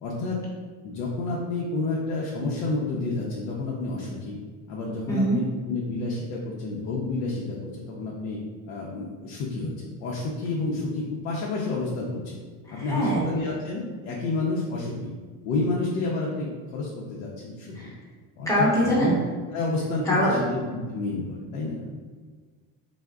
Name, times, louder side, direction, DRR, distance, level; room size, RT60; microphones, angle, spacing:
voice 1, 0.0-0.4 0.8-4.4 4.7-8.4 8.7-12.4 12.7-15.1 15.4-17.9 18.4-19.1 19.5-21.8, left 3 dB, 80° left, -4 dB, 0.6 m, -30 dB
voice 2, 5.1-5.4 12.7-13.2 17.7-17.9 18.5-19.1 20.1-20.6, equal, 10° left, -7 dB, 0.8 m, -23 dB
3.4 x 2.0 x 2.3 m, 1.5 s
cardioid pair, 145°, 31 cm